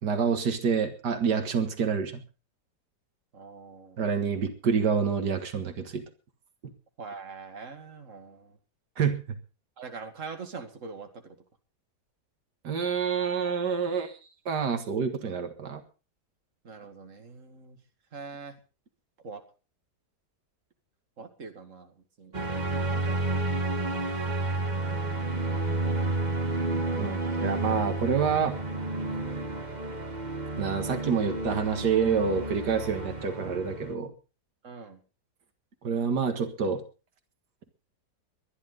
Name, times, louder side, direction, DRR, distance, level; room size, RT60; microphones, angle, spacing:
voice 1, 0.0-2.2 4.0-6.0 9.0-9.2 12.6-14.2 14.5-15.8 27.0-28.6 30.6-34.1 35.8-36.8, right 6 dB, 90° right, 8 dB, 2.3 m, -27 dB
voice 2, 3.3-4.1 7.0-8.6 9.8-11.4 16.6-17.8 18.1-18.5 19.2-19.4 21.2-22.3 22.8-23.6 29.2-29.6 34.6-35.0, right 4 dB, 50° right, 5 dB, 2.5 m, -43 dB
sound 1, 22.3-33.9, right 2 dB, 30° right, 1.5 m, -31 dB
22.5 x 11.0 x 3.9 m, 0.34 s
omnidirectional pair, 1.7 m